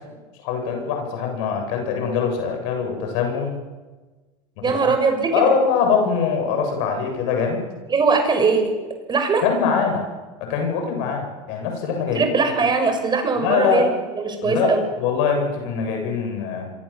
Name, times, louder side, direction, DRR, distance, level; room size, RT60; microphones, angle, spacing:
voice 1, 0.4-3.6 4.8-4.9 5.3-7.6 9.4-10.1 10.4-12.3 13.4-13.9 14.4-16.7, left 6 dB, 70° left, 3 dB, 7.7 m, -23 dB
voice 2, 4.6-5.4 7.9-8.7 9.1-9.4 12.1-14.8, right 4 dB, 25° right, 5 dB, 6.5 m, -20 dB
27.0 x 23.5 x 7.4 m, 1.3 s
hypercardioid pair, 95°, 16 cm